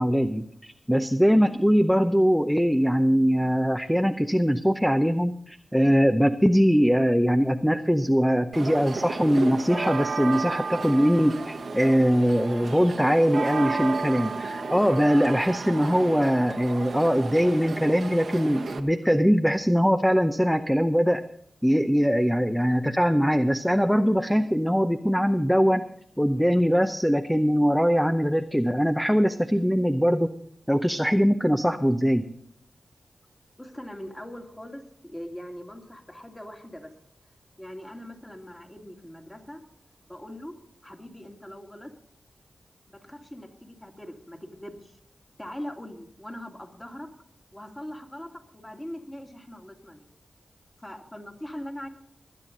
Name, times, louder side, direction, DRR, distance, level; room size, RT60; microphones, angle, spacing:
voice 1, 0.0-21.2 21.6-25.9 26.2-30.3 30.7-32.3, equal, ahead, 8 dB, 0.7 m, -22 dB
sound 1, 8.5-18.8, right 4 dB, 75° right, 1.1 m, -33 dB
voice 2, 33.6-37.0 37.6-39.6 40.1-40.6 40.8-42.0 42.9-45.0 45.4-47.1 47.5-50.1 50.8-51.9, left 1 dB, 15° left, 2 dB, 2.5 m, -41 dB
20.0 x 9.1 x 3.9 m, 0.68 s
cardioid pair, 60°, 0 cm